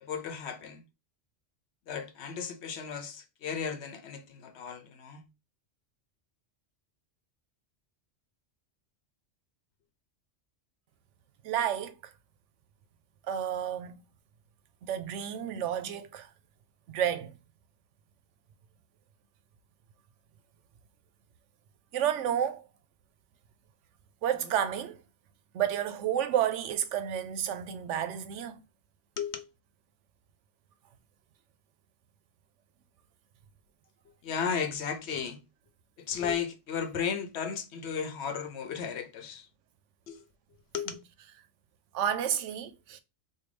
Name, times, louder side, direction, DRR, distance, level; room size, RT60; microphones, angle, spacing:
voice 1, 0.0-0.8 1.9-5.3 29.2-29.5 34.2-35.4 36.0-39.5 40.1-40.2 40.7-41.0, left 7 dB, 70° left, 0.9 m, -35 dB
voice 2, 11.4-12.1 13.3-14.0 14.8-16.3 16.9-17.3 21.9-22.6 24.2-25.0 25.5-28.6 40.9-41.0 41.9-43.0, right 9 dB, 85° right, 0.9 m, -31 dB
3.7 x 2.3 x 3.1 m
omnidirectional pair, 1.2 m